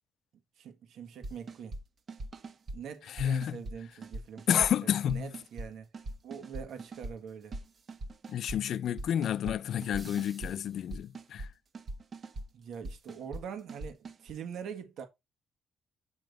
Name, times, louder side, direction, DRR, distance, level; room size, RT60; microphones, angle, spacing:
voice 1, 0.6-1.8 2.7-4.7 5.1-5.9 6.2-7.6 12.5-15.1, right 7 dB, 75° right, 1.7 m, -43 dB
sound 1, 1.2-1.8 2.1-2.8 3.2-3.8 4.0-4.7 5.1-5.7 5.9-7.1 7.5-8.6 9.0-9.6 9.8-10.5 10.9-11.5 11.7-12.5 12.8-13.4 13.7-14.3, right 2 dB, 50° right, 1.4 m, -41 dB
voice 2, 3.1-3.6 4.5-5.3 8.3-11.5, left 10 dB, 70° left, 0.5 m, -30 dB
sound 2, 9.7-11.3, right 2 dB, 20° right, 0.9 m, -55 dB
8.8 x 3.0 x 5.2 m
cardioid pair, 90°, 0 cm